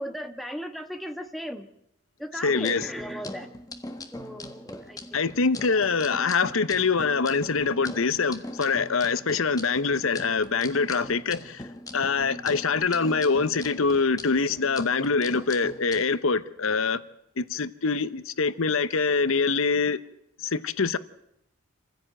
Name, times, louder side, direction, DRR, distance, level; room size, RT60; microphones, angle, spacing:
voice 1, 0.0-1.7 2.2-3.5 4.1-5.3, equal, ahead, 1.3 m, -36 dB
voice 2, 2.4-2.9 5.1-11.6 11.9-17.0 17.4-20.0 20.4-21.0, left 4 dB, 75° left, 0.9 m, -24 dB
sound 1, 2.5-16.0, left 1 dB, 15° left, 1.5 m, -41 dB
27.0 x 16.0 x 8.9 m
head